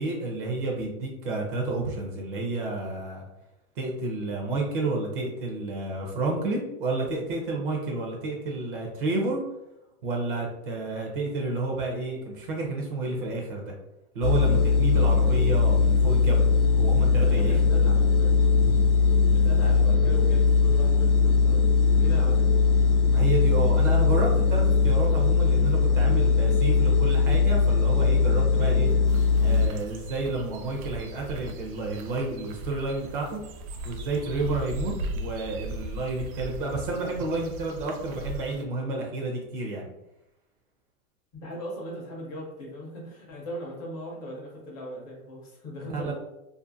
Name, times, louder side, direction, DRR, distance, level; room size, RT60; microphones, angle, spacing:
voice 1, 0.0-3.2 3.8-9.4 10.0-13.7 14.1-16.5 16.7-17.6 23.1-28.9 29.4-33.4 33.8-39.9 45.9-46.1, right 2 dB, 40° right, 0 dB, 0.5 m, -30 dB
sound 1, 14.2-29.7, left 4 dB, 80° left, 0.6 m, -20 dB
voice 2, 17.2-18.4 19.3-21.6 21.9-22.5 41.4-46.1, equal, 30° left, -2 dB, 0.6 m, -38 dB
sound 2, 29.1-38.6, right 1 dB, 85° right, 0.5 m, -38 dB
2.5 x 2.5 x 2.5 m, 0.88 s
supercardioid pair, 155°, 42 cm